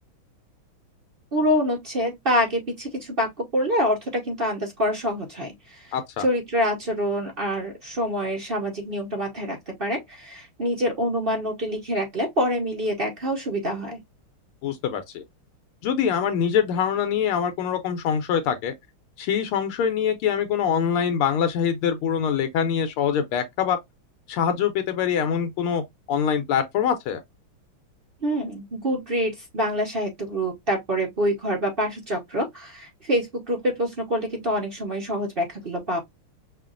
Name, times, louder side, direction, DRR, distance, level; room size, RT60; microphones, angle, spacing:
voice 1, 1.3-14.0 28.2-36.0, equal, 60° right, 0.5 m, -26 dB
voice 2, 5.9-6.2 14.6-15.2 15.8-18.7 19.2-23.8 24.3-27.2, left 7 dB, 80° left, 1.5 m, -24 dB
5.7 x 2.4 x 2.4 m
omnidirectional pair, 2.4 m